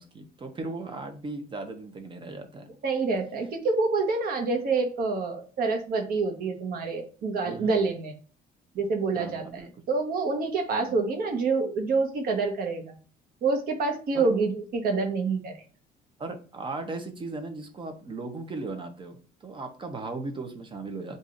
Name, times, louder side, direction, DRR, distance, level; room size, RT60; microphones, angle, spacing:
voice 1, 0.0-2.7 7.5-7.9 9.2-9.7 10.7-10.9 14.1-14.3 16.2-21.2, right 3 dB, 30° right, 6 dB, 0.8 m, -37 dB
voice 2, 2.8-8.1 8.7-13.0 13.4-15.6, right 4 dB, 60° right, 4 dB, 1.1 m, -27 dB
6.7 x 2.7 x 2.5 m, 0.38 s
cardioid pair, 110°, 17 cm